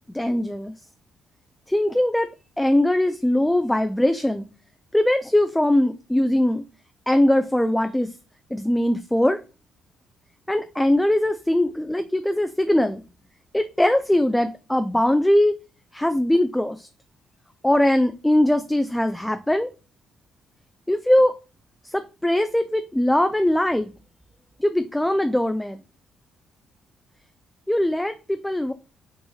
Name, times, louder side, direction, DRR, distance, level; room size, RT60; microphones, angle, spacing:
voice 1, 0.1-0.7 1.7-2.3 2.6-4.4 4.9-6.6 7.1-8.1 8.5-9.4 10.5-13.0 13.5-15.5 15.9-16.9 17.6-19.7 20.9-21.3 21.9-23.9 24.6-25.8 27.7-28.7, left 1 dB, 5° left, 8 dB, 0.4 m, -21 dB
6.2 x 2.4 x 3.1 m, 0.32 s
cardioid pair, 90°, 0 cm